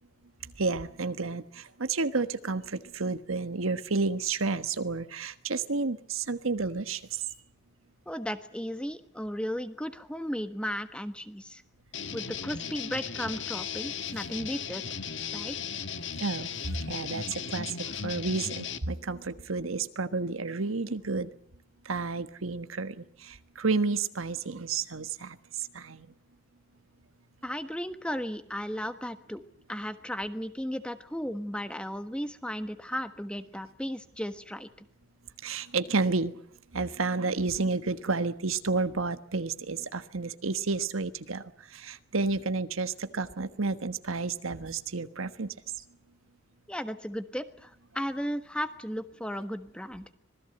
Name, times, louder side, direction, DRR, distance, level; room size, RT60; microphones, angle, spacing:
voice 1, 0.4-7.2 16.2-16.5 16.7-21.3 21.8-25.4 25.7-26.1 35.4-36.4 36.7-45.5, right 4 dB, 90° right, 11 dB, 1.4 m, -31 dB
voice 2, 8.1-11.6 12.1-15.0 15.3-15.5 27.4-29.4 29.7-34.7 46.7-50.1, equal, 5° left, 9 dB, 1.4 m, -35 dB
sound 1, 11.9-18.8, left 7 dB, 60° left, 1.5 m, -36 dB
26.0 x 20.0 x 8.0 m, 0.64 s
head